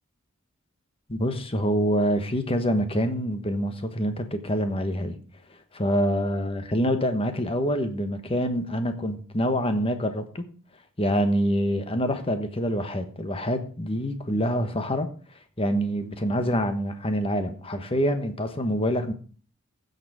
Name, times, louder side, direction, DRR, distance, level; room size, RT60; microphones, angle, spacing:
voice 1, 1.1-5.2 5.7-10.5 11.0-15.1 15.6-19.1, equal, 25° left, 1.2 m, -26 dB
15.5 x 6.8 x 4.9 m
head